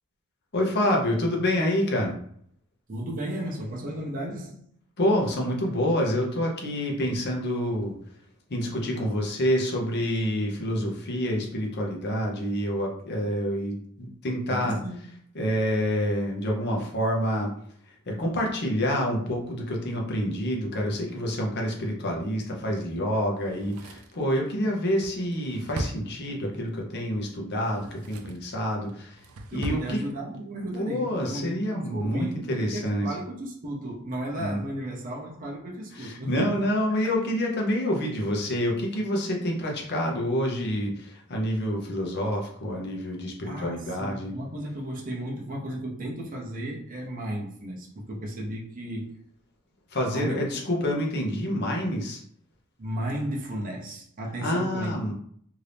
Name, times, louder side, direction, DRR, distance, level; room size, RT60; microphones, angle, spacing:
voice 1, 0.5-2.2 5.0-7.9 8.5-14.8 15.3-17.5 18.1-29.2 29.5-30.0 30.8-33.1 34.4-34.6 35.9-44.3 49.9-52.2 54.4-55.1, equal, 50° left, 0 dB, 0.8 m, -27 dB
voice 2, 2.9-4.6 14.5-15.0 29.5-36.7 43.4-49.2 50.1-50.5 52.8-55.0, right 1 dB, 40° right, -2 dB, 0.7 m, -34 dB
Drawer open or close, 23.4-26.7 27.6-28.5 28.9-29.9 30.2-30.3, right 2 dB, 85° right, 0.4 m, -38 dB
2.8 x 2.6 x 3.3 m, 0.63 s
head